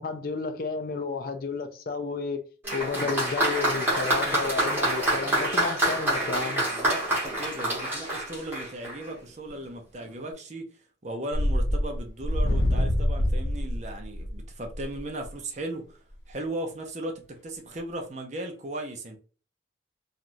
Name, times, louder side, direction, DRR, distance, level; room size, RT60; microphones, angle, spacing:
voice 1, 0.0-2.5 2.7-6.6, left 4 dB, 50° left, 0.4 m, -32 dB
Applause, 2.6-9.1 10.0-10.1, right 1 dB, 10° right, 1.3 m, -27 dB
voice 2, 6.5-10.7 11.0-16.0 16.3-19.2, right 1 dB, 40° right, 0.6 m, -37 dB
sound 1, 11.3-15.4, left 1 dB, 85° left, 0.8 m, -26 dB
3.1 x 2.4 x 2.6 m
head